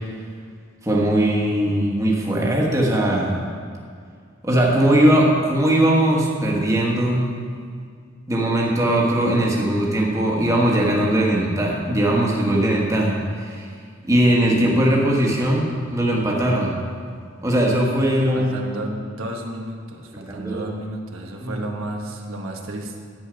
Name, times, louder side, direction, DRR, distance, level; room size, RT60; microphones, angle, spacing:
voice 1, 0.8-3.4 4.4-7.3 8.3-13.7 14.0-16.8 17.4-18.5 20.3-20.7 21.4-21.6, right 1 dB, 15° right, -3 dB, 1.3 m, -20 dB
voice 2, 18.3-23.0, right 1 dB, 80° right, 1 dB, 1.1 m, -32 dB
10.5 x 8.3 x 5.1 m, 2.1 s
head